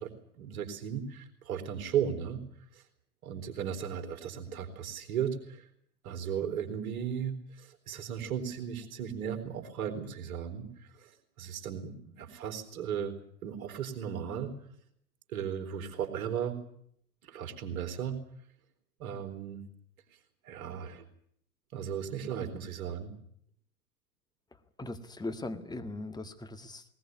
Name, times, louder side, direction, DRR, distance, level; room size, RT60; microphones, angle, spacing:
voice 1, 0.0-2.4 2.7-2.8 3.2-5.6 6.0-11.1 11.4-13.1 13.4-14.5 15.3-16.6 17.2-18.2 19.0-19.6 20.4-21.1 21.7-23.2, right 8 dB, 60° right, 6 dB, 4.1 m, -36 dB
voice 2, 24.8-26.8, left 2 dB, 10° left, 7 dB, 1.8 m, -39 dB
20.0 x 19.5 x 9.5 m, 0.69 s
hypercardioid pair, 100°, 47 cm